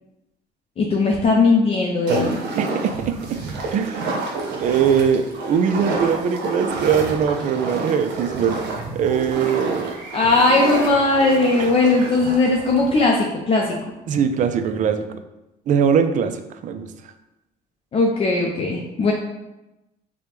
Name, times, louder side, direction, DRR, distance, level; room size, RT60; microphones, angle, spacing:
voice 1, 0.8-2.4 10.1-13.7 17.9-19.1, left 3 dB, 35° left, -1 dB, 0.5 m, -18 dB
sound 1, 2.1-13.1, right 2 dB, 85° right, 0.7 m, -29 dB
voice 2, 2.6-3.4 3.7-4.1 4.6-8.6 8.9-10.0 11.6-11.7 14.1-15.2 15.7-16.4 16.6-16.9, right 7 dB, 50° right, 8 dB, 0.4 m, -21 dB
4.9 x 2.2 x 3.0 m, 0.96 s
cardioid pair, 110°, 17 cm